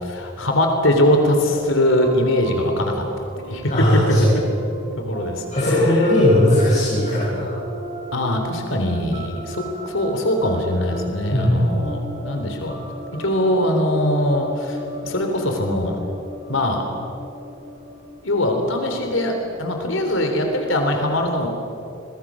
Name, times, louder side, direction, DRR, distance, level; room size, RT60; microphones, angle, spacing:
voice 1, 0.0-3.0 3.5-3.6 5.0-6.0 8.1-12.8 13.2-16.0 16.5-16.9 18.2-19.3 19.6-21.5, left 1 dB, 80° left, 4 dB, 3.6 m, -21 dB
sound 1, 1.1-20.7, right 1 dB, 35° right, 4.6 m, -37 dB
voice 2, 3.7-4.4 5.5-7.5 11.3-11.6, left 1 dB, 40° left, -8 dB, 7.6 m, -17 dB
29.5 x 22.5 x 6.4 m, 2.7 s
head